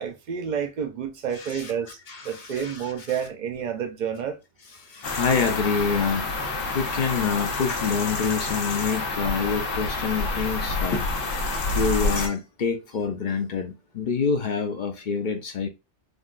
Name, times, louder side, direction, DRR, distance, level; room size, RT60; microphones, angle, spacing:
voice 1, 0.0-2.0 2.2-4.4, right 7 dB, 55° right, 0.5 m, -29 dB
voice 2, 1.3-1.7 2.1-3.2 4.8-11.1 11.7-15.7, left 5 dB, 55° left, 0.5 m, -27 dB
sound 1, 5.0-12.3, left 3 dB, 85° left, 1.1 m, -28 dB
3.6 x 2.2 x 2.4 m
omnidirectional pair, 1.3 m